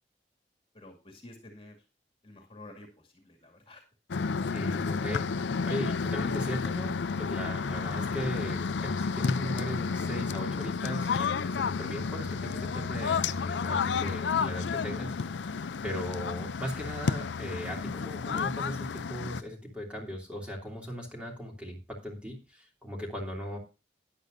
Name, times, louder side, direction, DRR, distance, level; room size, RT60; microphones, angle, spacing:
voice 1, 0.7-1.8 2.2-3.8, left 2 dB, 30° left, 2 dB, 2.3 m, -50 dB
sound 1, 4.1-19.4, left 5 dB, 90° left, 0.5 m, -31 dB
voice 2, 4.5-23.6, equal, 5° right, -1 dB, 3.0 m, -38 dB
13.0 x 10.5 x 2.6 m, 0.29 s
head